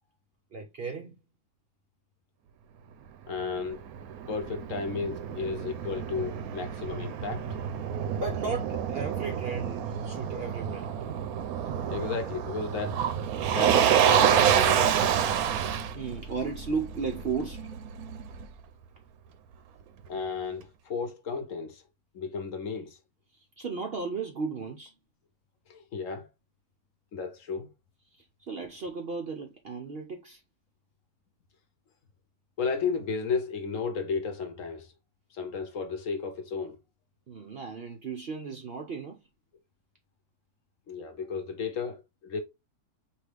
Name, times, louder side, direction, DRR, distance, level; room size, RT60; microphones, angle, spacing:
voice 1, 0.5-1.2 8.2-10.9 15.9-17.7 23.3-24.9 28.1-30.4 37.3-39.3, right 4 dB, 55° right, 0.7 m, -35 dB
voice 2, 3.3-3.8 4.3-7.5 11.9-13.0 13.5-15.3 20.1-21.8 22.1-23.0 25.7-26.3 27.1-27.7 32.6-34.9 35.3-36.8 40.9-42.4, left 5 dB, 60° left, 1.1 m, -33 dB
Motor vehicle (road), 3.4-18.4, right 9 dB, 75° right, 1.0 m, -28 dB
4.7 x 3.0 x 3.3 m
omnidirectional pair, 1.7 m